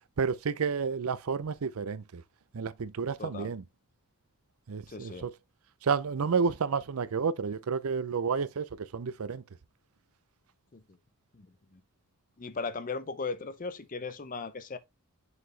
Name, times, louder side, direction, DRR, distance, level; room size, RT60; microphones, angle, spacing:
voice 1, 0.2-2.2 2.5-3.6 4.7-5.3 5.8-9.4, right 5 dB, 75° right, 0.5 m, -30 dB
voice 2, 3.2-3.5 4.9-5.2 10.7-10.8 11.3-11.5 11.7-11.8 12.4-14.8, left 4 dB, 35° left, 0.6 m, -37 dB
6.5 x 4.8 x 3.3 m
head